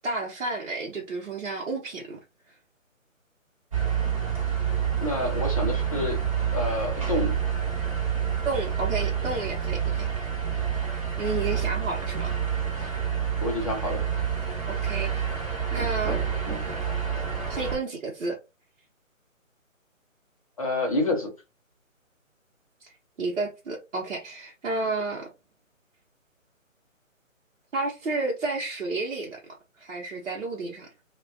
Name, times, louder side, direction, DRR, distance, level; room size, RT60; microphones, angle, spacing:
voice 1, 0.0-2.2 8.4-10.3 11.2-12.3 14.7-15.2 15.7-16.2 17.5-18.4 22.8-22.9 23.2-25.3 27.7-29.4 29.8-30.9, right 3 dB, 65° right, 0.8 m, -31 dB
sound 1, 3.7-17.8, right 8 dB, 25° right, 0.6 m, -28 dB
voice 2, 5.0-6.2 6.5-7.4 13.4-14.0 20.6-21.3, left 2 dB, 25° left, 0.6 m, -28 dB
2.4 x 2.2 x 2.3 m
figure-of-eight pair, 145°, 40 cm